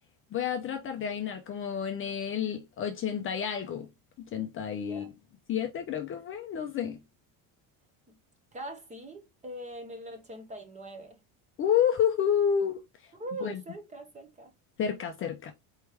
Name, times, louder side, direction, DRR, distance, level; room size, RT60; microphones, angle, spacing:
voice 1, 0.3-3.9 4.3-5.1 5.5-7.0 11.6-12.8 13.4-13.5 14.8-15.5, left 8 dB, 30° left, 0.6 m, -29 dB
voice 2, 4.8-5.1 8.1-8.2 8.5-11.2 13.2-14.5, right 1 dB, 15° right, 1.0 m, -42 dB
4.5 x 3.3 x 3.3 m
cardioid pair, 160°, 41 cm